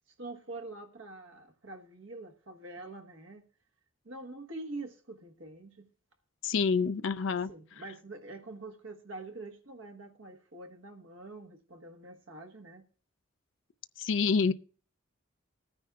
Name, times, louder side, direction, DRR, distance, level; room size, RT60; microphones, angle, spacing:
voice 1, 0.2-3.4 4.0-5.9 7.3-12.8, right 2 dB, 80° right, 1.3 m, -45 dB
voice 2, 6.4-7.5 14.0-14.5, left 5 dB, 70° left, 0.4 m, -27 dB
20.0 x 9.6 x 2.3 m
head